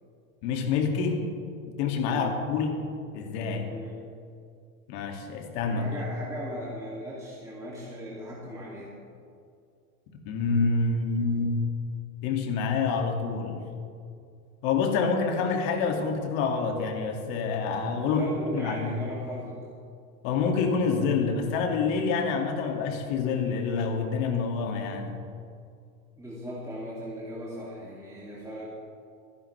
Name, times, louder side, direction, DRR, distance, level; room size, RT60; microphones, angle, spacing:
voice 1, 0.4-1.2 1.8-2.8 3.1-3.7 4.9-5.8 10.3-11.6 12.2-13.7 14.6-18.3 18.5-18.9 20.2-25.2, left 5 dB, 60° left, 2 dB, 2.4 m, -27 dB
voice 2, 5.7-9.0 18.0-19.6 26.2-28.7, equal, 5° right, -7 dB, 2.6 m, -38 dB
24.5 x 11.0 x 3.4 m, 2.4 s
supercardioid pair, 125°, 43 cm